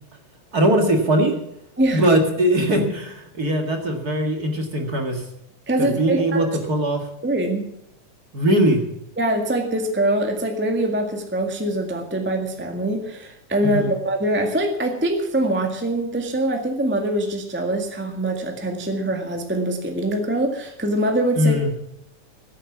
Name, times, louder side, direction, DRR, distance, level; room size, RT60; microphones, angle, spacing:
voice 1, 0.5-1.4 1.9-5.2 5.8-7.1 8.3-8.8 13.6-13.9 21.4-21.7, right 1 dB, 35° right, 3 dB, 1.9 m, -20 dB
voice 2, 5.7-6.5 7.2-7.6 9.2-21.6, right 1 dB, 5° right, 3 dB, 0.8 m, -23 dB
15.5 x 9.0 x 7.2 m, 0.80 s
omnidirectional pair, 3.6 m